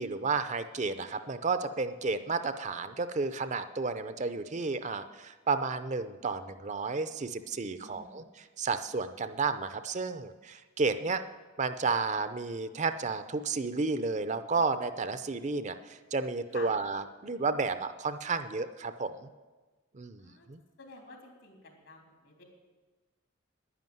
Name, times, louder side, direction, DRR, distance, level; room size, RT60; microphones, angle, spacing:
voice 1, 0.0-11.2 11.6-19.3 19.9-20.6, right 4 dB, 35° right, 11 dB, 0.6 m, -32 dB
voice 2, 7.8-8.2 16.5-16.7 20.2-20.5 20.8-22.4, left 3 dB, 75° left, 1 dB, 3.5 m, -49 dB
11.0 x 10.5 x 9.2 m, 1.3 s
head